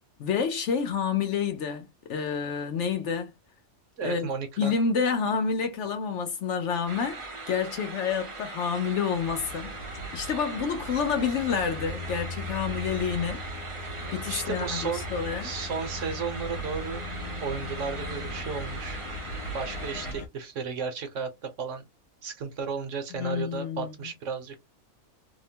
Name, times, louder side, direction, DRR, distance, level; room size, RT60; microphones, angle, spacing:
voice 1, 0.2-3.3 4.0-4.3 4.6-7.2 7.5-9.7 10.1-13.4 14.1-15.5 23.1-23.9, left 6 dB, 65° left, 0.8 m, -28 dB
voice 2, 4.0-4.7 14.3-15.1 15.4-17.1 17.4-19.0 19.5-21.8 22.2-24.6, right 5 dB, 65° right, 1.0 m, -34 dB
sound 1, 6.9-20.1, right 3 dB, 40° right, 0.4 m, -40 dB
sound 2, 9.1-20.3, left 1 dB, 85° left, 1.1 m, -38 dB
2.8 x 2.1 x 2.7 m
omnidirectional pair, 1.5 m